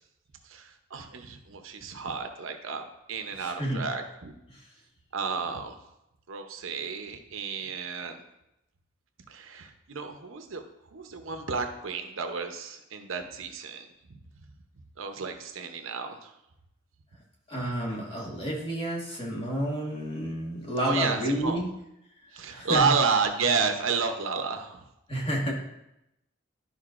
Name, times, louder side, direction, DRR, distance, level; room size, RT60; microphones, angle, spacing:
voice 1, 0.5-4.3 5.1-5.8 6.3-8.2 9.3-10.6 10.9-14.2 15.0-16.3 20.8-21.7 22.3-24.8, right 5 dB, 80° right, 6 dB, 0.8 m, -31 dB
voice 2, 3.4-3.8 4.5-4.6 17.5-21.7 22.3-22.9 25.1-25.5, equal, 25° left, -3 dB, 1.6 m, -30 dB
12.0 x 5.1 x 2.5 m, 0.87 s
head